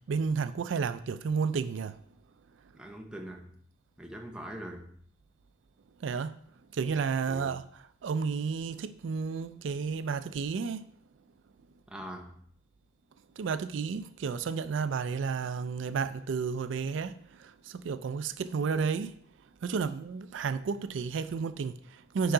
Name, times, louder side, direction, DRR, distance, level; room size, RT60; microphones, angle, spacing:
voice 1, 0.1-2.0 6.0-6.4 6.7-7.6 8.0-10.8 13.4-19.1 19.6-22.3, right 5 dB, 80° right, 0.4 m, -32 dB
voice 2, 2.7-3.5 4.0-4.8 7.2-7.6 11.9-12.3, right 1 dB, 5° right, 0.9 m, -42 dB
9.9 x 4.6 x 3.8 m
head